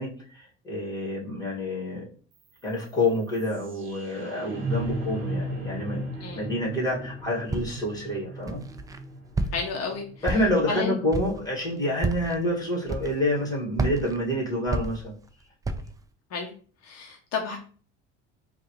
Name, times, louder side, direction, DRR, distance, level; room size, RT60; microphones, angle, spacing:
voice 1, 0.0-2.1 2.6-8.6 10.2-15.1, left 1 dB, 10° left, -3 dB, 1.9 m, -28 dB
sound 1, 2.3-12.3, right 1 dB, 40° right, 1.4 m, -37 dB
Walk footsteps, 7.5-8.0 8.5-9.0 9.3-9.8 10.2-10.7 11.1-11.5 12.0-12.4 12.9-13.4 13.7-15.3 15.6-16.0, right 2 dB, 10° right, 0.3 m, -30 dB
voice 2, 9.5-10.1 10.7-11.0 16.3-16.5 16.8-17.6, left 4 dB, 55° left, 2 dB, 0.8 m, -31 dB
4.7 x 2.5 x 3.1 m, 0.42 s
cardioid pair, 110°, 30 cm